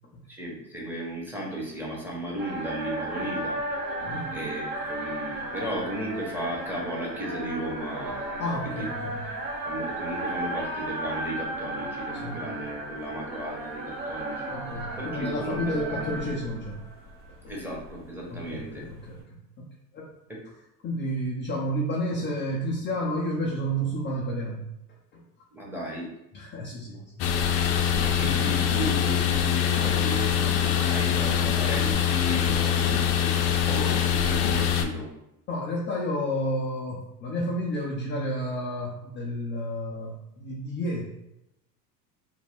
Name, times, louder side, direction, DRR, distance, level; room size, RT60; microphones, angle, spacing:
voice 1, 0.3-3.6 4.3-8.9 9.6-14.5 15.0-16.1 17.5-18.8 20.3-20.4 25.5-26.1 27.9-35.1, equal, 5° right, -4 dB, 0.8 m, -35 dB
sound 1, 2.4-19.2, right 1 dB, 75° right, 1.0 m, -35 dB
voice 2, 4.0-4.3 8.4-9.2 12.2-12.4 14.5-16.8 18.3-19.7 19.9-20.1 20.8-24.7 26.3-27.2 35.5-41.0, equal, 25° left, -4 dB, 0.4 m, -31 dB
sound 2, 27.2-34.8, left 9 dB, 75° left, 0.5 m, -24 dB
2.5 x 2.1 x 3.4 m, 0.84 s
hypercardioid pair, 85°, 50 cm